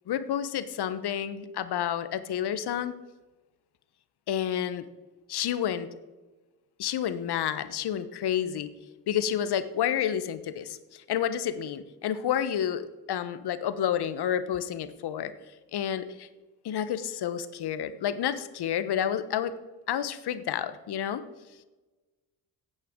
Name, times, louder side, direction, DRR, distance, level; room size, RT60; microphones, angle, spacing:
voice 1, 0.1-2.9 4.3-4.8 5.3-5.9 6.8-8.7 9.1-15.3 15.7-16.3 16.6-19.6 19.9-21.2, left 9 dB, 55° left, 13 dB, 1.1 m, -30 dB
15.0 x 9.2 x 3.8 m, 1.2 s
hypercardioid pair, 50°, 48 cm